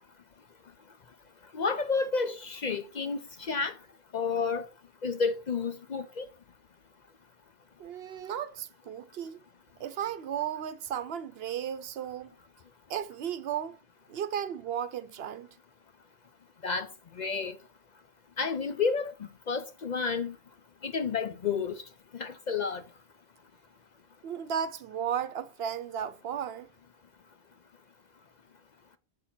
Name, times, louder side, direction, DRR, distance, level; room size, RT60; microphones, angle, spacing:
voice 1, 1.5-3.7 4.1-4.7 5.0-6.3 16.6-16.9 17.2-17.6 18.4-19.1 19.5-20.3 20.8-21.7 22.2-22.8, left 5 dB, 50° left, 0.6 m, -30 dB
voice 2, 7.8-9.4 9.8-12.3 12.9-13.8 14.1-15.5 24.2-26.7, right 9 dB, 70° right, 0.8 m, -34 dB
7.6 x 4.3 x 5.8 m
omnidirectional pair, 1.1 m